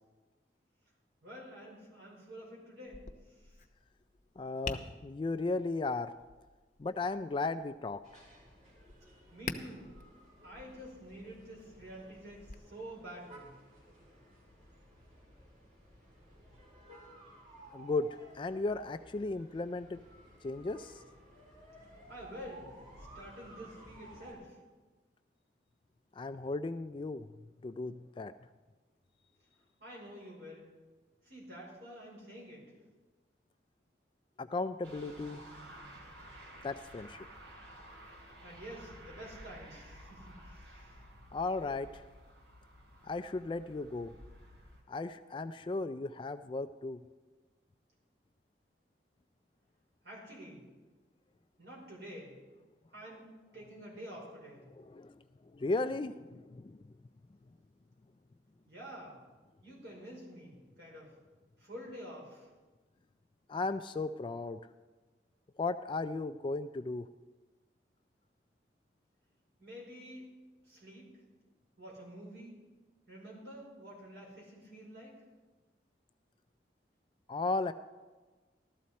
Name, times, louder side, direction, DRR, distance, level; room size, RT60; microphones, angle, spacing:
voice 1, 1.2-3.6 9.1-9.9 10.4-13.6 22.1-22.7 23.0-24.6 29.8-30.7 31.2-32.7 38.4-40.9 50.0-50.6 51.6-52.4 52.9-54.7 58.7-59.2 59.6-61.1 61.6-62.5 69.6-70.3 70.6-71.2 71.8-72.6 73.1-75.2, equal, 70° right, -3 dB, 4.8 m, -49 dB
Tap, 2.9-12.5, left 4 dB, 45° left, 0.8 m, -48 dB
voice 2, 4.4-6.1 6.8-8.0 17.7-20.0 20.4-21.0 26.2-27.3 27.6-28.3 34.4-35.4 36.6-37.3 41.3-42.0 43.0-44.1 44.9-47.0 54.8-55.2 55.5-56.9 63.5-64.6 65.6-67.1 77.3-77.7, left 3 dB, 30° left, 11 dB, 0.3 m, -35 dB
sound 1, 8.0-24.3, right 1 dB, 50° right, 3.7 m, -56 dB
sound 2, 34.8-44.8, right 1 dB, 90° right, 3.0 m, -53 dB
15.0 x 12.5 x 4.2 m, 1.3 s
head